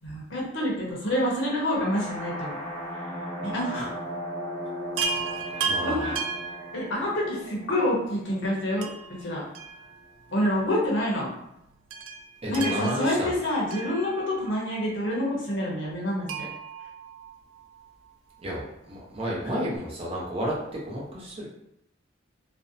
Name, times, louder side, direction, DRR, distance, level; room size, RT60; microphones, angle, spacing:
voice 1, 0.0-2.6 3.4-3.9 5.5-6.2 6.5-8.9 9.2-9.4 10.3-11.3 12.5-16.5, left 1 dB, 75° left, -3 dB, 0.7 m, -27 dB
sound 1, 1.6-9.5, equal, 10° left, 0.8 m, -37 dB
Chime, 5.0-7.4 8.8-10.3 10.6-10.7 11.9-14.6 16.3-17.9 19.5-19.6 19.8-19.9, right 5 dB, 80° right, 0.3 m, -34 dB
voice 2, 5.6-6.2 12.4-13.3 18.4-21.5, equal, 30° right, -5 dB, 0.6 m, -32 dB
2.5 x 2.0 x 2.6 m, 0.79 s
head